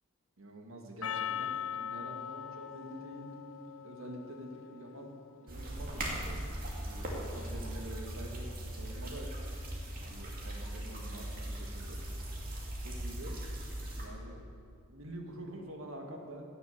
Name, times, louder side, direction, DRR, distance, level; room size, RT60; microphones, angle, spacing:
voice 1, 0.4-3.3 3.8-5.1 5.4-6.4 6.7-9.3 10.1-12.0 12.8-13.4 13.9-14.4 14.9-16.4, right 1 dB, 75° right, 2 dB, 1.8 m, -46 dB
Percussion, 1.0-5.5, left 9 dB, 65° left, 0.6 m, -41 dB
sound 1, 5.5-14.0, right 1 dB, 45° right, 2.5 m, -39 dB
17.5 x 6.8 x 7.0 m, 2.5 s
head